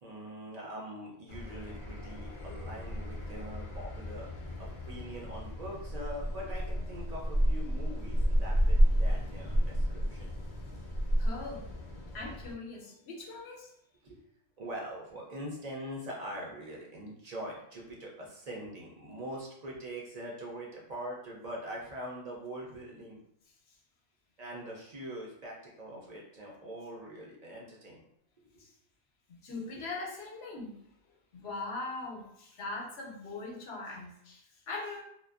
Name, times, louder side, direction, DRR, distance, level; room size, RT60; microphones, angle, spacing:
voice 1, 0.0-4.3 4.6-10.3 11.0-11.2 13.0-13.1 14.0-14.2 14.6-23.2 24.4-28.0 29.8-29.9, right 1 dB, 50° right, -2 dB, 0.5 m, -43 dB
sound 1, 1.3-12.5, equal, 50° left, 0.6 m, -31 dB
voice 2, 11.2-11.7 12.1-13.7 28.6-28.7 29.3-30.8 31.3-35.0, left 3 dB, 80° left, 0 dB, 0.9 m, -41 dB
2.5 x 2.1 x 2.3 m, 0.74 s
omnidirectional pair, 1.1 m